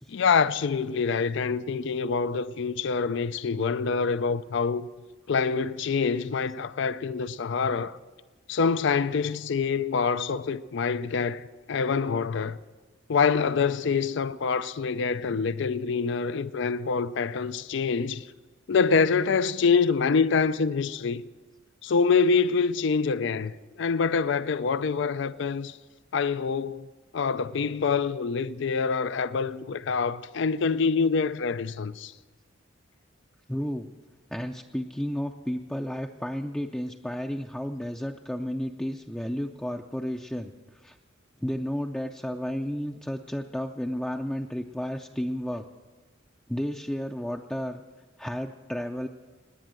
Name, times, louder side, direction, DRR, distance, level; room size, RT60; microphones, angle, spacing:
voice 1, 0.1-4.9 5.3-8.0 8.5-12.6 13.1-18.3 18.7-21.2 21.8-25.8 26.1-26.9 27.1-32.1, left 5 dB, 65° left, 0.5 m, -26 dB
voice 2, 33.5-33.9 34.3-41.0 41.4-45.7 46.5-47.8 48.2-49.1, equal, 5° left, 0.5 m, -32 dB
18.5 x 9.7 x 7.6 m
head